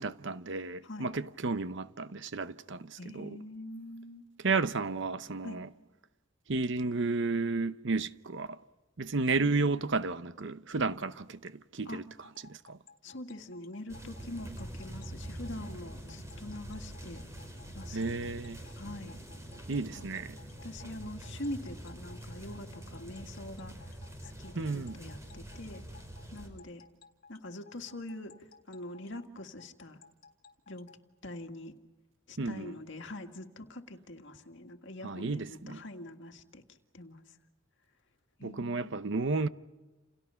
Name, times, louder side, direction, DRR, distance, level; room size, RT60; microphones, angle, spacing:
voice 1, 0.0-3.4 4.4-5.7 6.5-8.6 9.0-12.0 12.4-12.8 17.9-18.6 19.7-20.4 24.5-25.0 32.4-32.7 35.0-35.8 38.4-39.5, right 3 dB, 60° right, 0.8 m, -32 dB
voice 2, 3.0-4.3 5.4-5.6 11.9-12.0 13.0-17.2 17.7-18.3 18.7-19.2 19.9-20.0 20.6-23.9 24.2-25.8 26.3-26.8 27.3-28.3 28.7-30.0 30.7-30.9 31.2-31.7 32.3-36.6 36.9-37.2 38.4-38.9, left 1 dB, 60° left, 2.0 m, -44 dB
sound 1, 12.2-31.0, left 5 dB, 45° left, 3.4 m, -57 dB
sound 2, 13.9-26.5, right 1 dB, 15° right, 5.4 m, -45 dB
29.5 x 29.5 x 5.7 m
head